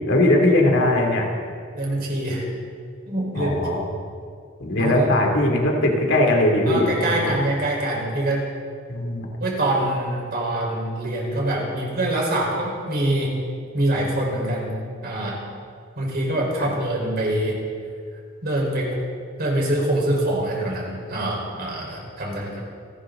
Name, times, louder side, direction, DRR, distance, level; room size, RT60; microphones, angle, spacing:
voice 1, 0.1-1.3 3.4-3.9 4.6-7.4 8.9-9.3 16.6-16.7, left 1 dB, 65° left, 1 dB, 2.9 m, -20 dB
voice 2, 1.7-2.5 3.1-3.7 4.7-5.1 6.7-8.4 9.4-13.4 13.7-14.8 15.0-15.4 16.0-17.6 18.4-19.0 19.4-22.6, right 1 dB, 50° right, -2 dB, 4.7 m, -24 dB
28.5 x 12.0 x 3.9 m, 2.2 s
head